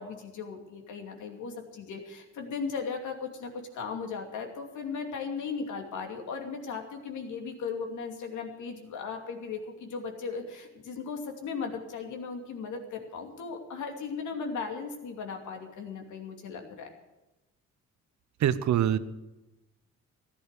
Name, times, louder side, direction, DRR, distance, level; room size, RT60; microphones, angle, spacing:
voice 1, 0.0-16.9, left 5 dB, 75° left, 3 dB, 2.7 m, -37 dB
voice 2, 18.4-19.0, right 10 dB, 70° right, 14 dB, 0.9 m, -24 dB
15.0 x 11.0 x 6.7 m, 1.0 s
cardioid pair, 90°, 30 cm